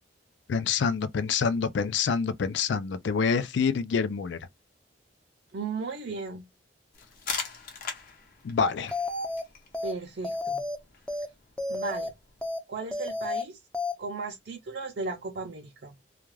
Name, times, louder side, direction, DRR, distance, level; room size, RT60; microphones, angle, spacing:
voice 1, 0.5-4.4 8.4-8.9, left 5 dB, 65° left, 0.4 m, -26 dB
voice 2, 5.5-6.4 9.8-10.6 11.7-12.1 12.7-13.6 14.0-16.0, right 4 dB, 60° right, 0.5 m, -35 dB
sound 1, 6.9-12.5, left 5 dB, 50° left, 0.8 m, -41 dB
sound 2, 8.9-9.4 9.7-9.9 10.2-10.8 11.1-11.3 11.6-12.1 12.4-12.6 12.9-13.4 13.7-13.9, left 2 dB, 5° left, 0.4 m, -31 dB
2.3 x 2.3 x 3.1 m
head